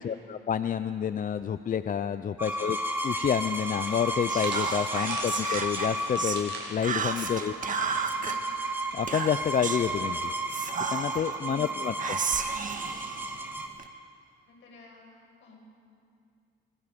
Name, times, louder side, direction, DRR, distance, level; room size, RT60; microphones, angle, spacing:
voice 1, 0.0-2.8 3.0-7.5 8.9-10.2 10.9-12.2, left 8 dB, 45° left, 12 dB, 0.6 m, -29 dB
voice 2, 2.3-2.7 7.1-7.4 7.6-7.8 8.2-8.4 11.4-11.8 14.5-15.6, left 3 dB, 70° left, 0 dB, 7.1 m, -53 dB
sound 1, 2.4-13.7, right 1 dB, 10° right, 2.7 m, -33 dB
sound 2, 4.1-8.4 8.7-8.9 9.8-10.1, right 3 dB, 60° right, 6.9 m, -42 dB
Whispering, 4.3-6.4 6.8-8.4 9.1-9.9 10.5-11.4 12.0-13.9, right 5 dB, 40° right, 1.7 m, -33 dB
27.0 x 24.0 x 5.3 m, 2.4 s
cardioid pair, 90°, 20 cm